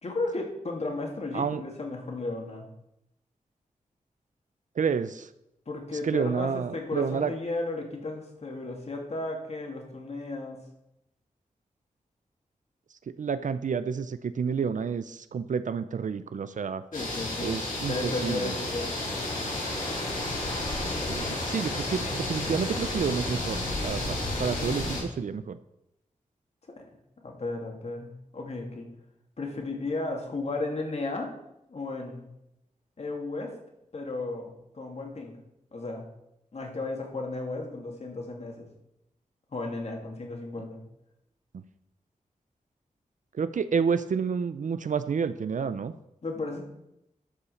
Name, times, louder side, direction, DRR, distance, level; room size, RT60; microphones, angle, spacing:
voice 1, 0.0-2.7 5.7-10.6 16.9-17.5 17.9-18.9 26.7-26.8 27.2-28.9 29.4-31.3 31.7-32.2 33.0-33.5 33.9-35.3 35.7-36.0 36.5-38.7 39.5-40.8 46.2-46.6, left 2 dB, 50° left, 1 dB, 2.8 m, -34 dB
voice 2, 4.8-5.3 6.0-7.3 13.2-16.8 17.4-18.5 21.0-25.6 41.5-41.6 43.3-45.9, right 6 dB, 70° right, 12 dB, 0.6 m, -29 dB
sound 1, 16.9-25.0, left 2 dB, 80° left, 4.5 m, -31 dB
12.0 x 5.7 x 7.2 m, 0.85 s
wide cardioid pair, 100°, 14 cm